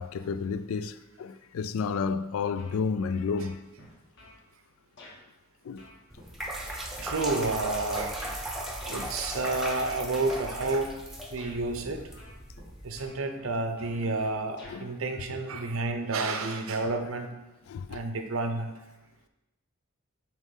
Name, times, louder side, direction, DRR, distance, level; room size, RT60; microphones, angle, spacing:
voice 1, 0.0-3.6 5.6-5.9 8.9-9.1 14.0-14.1 14.7-14.9 17.7-18.0, left 5 dB, 75° left, 0.3 m, -31 dB
sound 1, 2.6-3.1 3.4-4.4 5.0-5.2 5.8-8.4 9.0-9.4 9.8-10.8 11.4-11.6 12.2-12.7 13.0-14.8, left 1 dB, 55° left, 1.4 m, -51 dB
sound 2, 6.1-13.1, right 1 dB, ahead, 0.7 m, -37 dB
voice 2, 7.0-8.4 8.9-11.0 11.3-12.0 12.8-17.3 17.9-18.7, right 3 dB, 75° right, 0.7 m, -30 dB
7.3 x 3.1 x 5.4 m
head